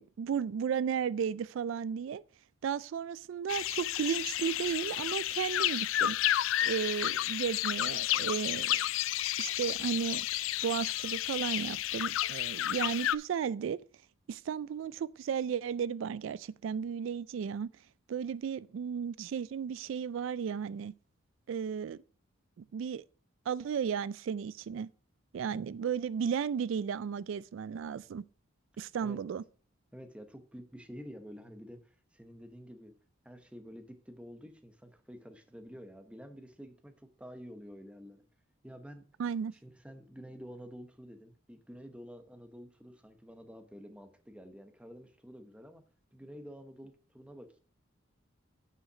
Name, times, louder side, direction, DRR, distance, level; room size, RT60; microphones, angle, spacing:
voice 1, 0.0-2.2 2.6-6.2 6.6-8.9 9.4-10.3 10.6-13.8 14.3-17.7 18.1-20.9 21.5-22.0 22.6-23.0 23.5-24.9 25.3-28.2 28.8-29.4 39.2-39.5, right 7 dB, 75° right, 0.3 m, -34 dB
sound 1, 3.5-13.2, left 13 dB, 80° left, 0.3 m, -31 dB
voice 2, 25.5-25.8 29.0-29.2 29.9-32.9 33.2-38.2 38.6-39.0 39.5-45.8 46.1-47.6, equal, 5° right, 0.8 m, -49 dB
8.1 x 5.7 x 4.9 m
head